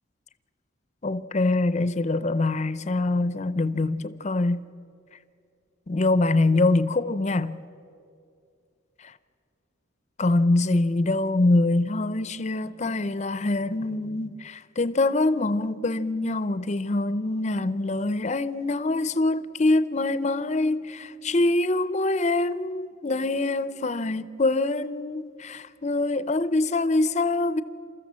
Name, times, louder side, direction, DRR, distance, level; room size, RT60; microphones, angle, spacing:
voice 1, 1.0-4.6 5.9-7.6 10.2-27.6, left 2 dB, 35° left, 0.6 m, -24 dB
29.0 x 14.0 x 7.5 m
head